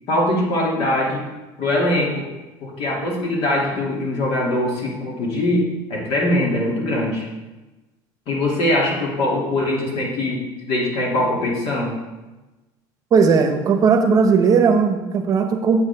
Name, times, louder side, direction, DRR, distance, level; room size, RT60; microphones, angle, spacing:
voice 1, 0.1-1.2 1.6-2.3 2.6-7.2 8.3-10.4 10.7-12.0, left 1 dB, 60° left, -3 dB, 2.7 m, -22 dB
voice 2, 13.1-15.9, right 5 dB, 35° right, 6 dB, 1.0 m, -17 dB
8.6 x 7.8 x 3.5 m, 1.1 s
supercardioid pair, 125°, 10 cm